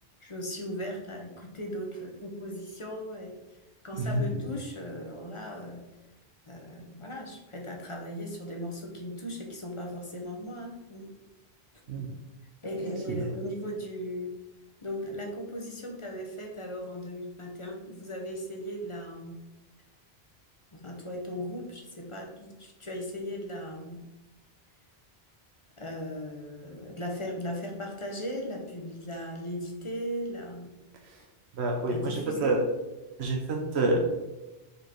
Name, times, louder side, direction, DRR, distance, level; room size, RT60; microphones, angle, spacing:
voice 1, 0.2-3.6 3.8-5.8 6.5-11.1 12.6-14.4 14.8-19.4 20.7-24.0 25.8-30.7 31.9-32.6, equal, 30° left, 1 dB, 1.1 m, -37 dB
voice 2, 3.9-4.4 11.9-12.1 12.9-13.2 31.0-31.2 31.5-32.6 33.2-34.0, right 2 dB, 90° right, 1 dB, 1.1 m, -28 dB
4.8 x 4.8 x 4.4 m, 1.0 s
omnidirectional pair, 1.1 m